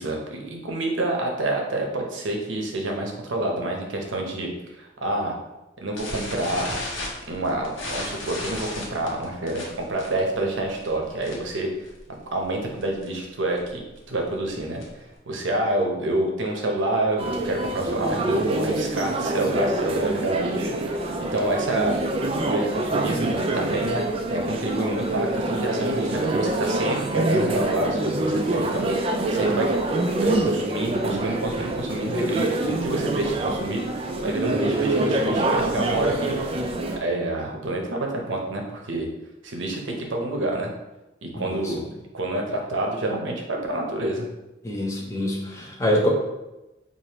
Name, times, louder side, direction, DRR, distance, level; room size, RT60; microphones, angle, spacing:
voice 1, 0.0-4.5 4.8-5.4 5.8-6.7 7.3-11.7 12.3-13.8 14.1-14.8 15.3-22.0 22.5-24.0 24.3-29.7 30.2-36.4 37.0-39.1 39.4-40.7 41.2-41.8 42.1-44.3, right 1 dB, 80° right, 1 dB, 0.7 m, -27 dB
sound 1, 6.0-11.6 11.9-12.1 12.4-12.5 12.8-13.1 13.6-15.1, left 2 dB, 85° left, 0.9 m, -34 dB
sound 2, 17.2-37.0, right 2 dB, 30° right, 0.3 m, -26 dB
voice 2, 41.4-41.7 44.6-46.1, left 1 dB, 15° left, -1 dB, 0.6 m, -25 dB
4.8 x 2.5 x 2.9 m, 1.0 s
head